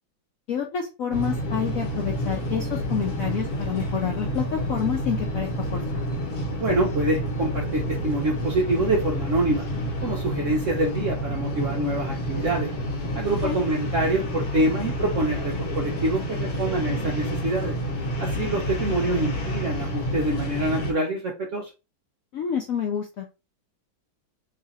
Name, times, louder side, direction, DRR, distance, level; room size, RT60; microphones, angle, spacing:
voice 1, 0.5-6.0 13.4-13.6 22.3-23.5, left 8 dB, 70° left, 1 dB, 0.8 m, -28 dB
sound 1, 1.1-20.9, equal, 55° left, 1.4 m, -29 dB
voice 2, 6.6-9.7 10.0-12.7 13.1-17.7 18.2-21.7, right 2 dB, 65° right, -1 dB, 0.7 m, -26 dB
3.2 x 2.5 x 4.0 m, 0.29 s
omnidirectional pair, 2.0 m